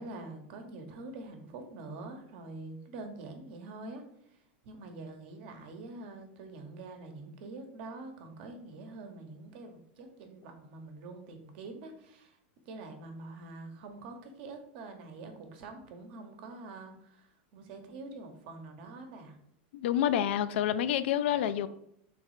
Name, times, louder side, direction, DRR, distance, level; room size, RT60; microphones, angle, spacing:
voice 1, 0.0-4.0 4.6-12.4 12.6-17.3 17.5-19.4, right 2 dB, 60° right, 1.0 m, -45 dB
voice 2, 19.7-21.7, left 10 dB, 75° left, 0.4 m, -28 dB
3.4 x 3.1 x 4.8 m
supercardioid pair, 140°, 6 cm